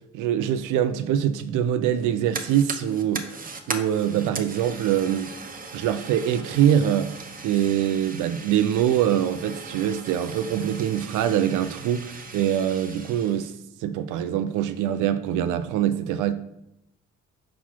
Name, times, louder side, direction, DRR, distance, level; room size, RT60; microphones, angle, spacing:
voice 1, 0.1-5.3 5.7-13.5 13.8-16.3, right 10 dB, 85° right, 0.5 m, -24 dB
Fire, 2.0-13.5, right 4 dB, 30° right, 0.8 m, -38 dB
5.9 x 4.1 x 4.4 m
cardioid pair, 90°, 30 cm